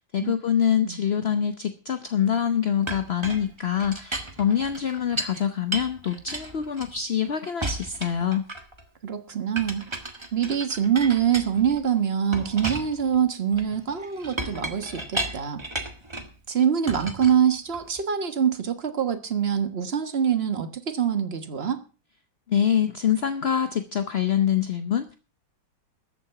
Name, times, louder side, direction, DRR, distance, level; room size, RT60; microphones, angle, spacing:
voice 1, 0.0-8.5 22.5-25.1, left 8 dB, 50° left, 0.7 m, -25 dB
Chink clink, 2.9-5.4 5.7-7.2 7.6-8.8 9.6-11.9 12.3-16.4 16.9-18.0, right 2 dB, 15° right, 1.4 m, -34 dB
voice 2, 9.0-9.9 10.3-15.6 16.5-21.8, right 8 dB, 35° right, 1.4 m, -24 dB
14.0 x 9.0 x 5.7 m
omnidirectional pair, 2.1 m